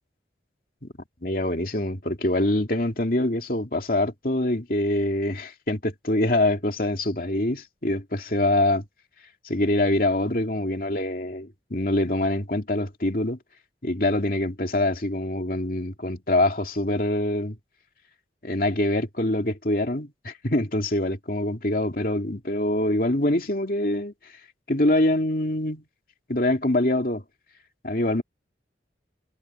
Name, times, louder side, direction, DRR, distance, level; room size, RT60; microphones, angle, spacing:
voice 1, 1.2-8.8 9.4-13.4 13.8-17.6 18.4-24.1 24.7-25.8 26.3-27.2 27.8-28.2, left 1 dB, 50° left, 2.6 m, -24 dB
head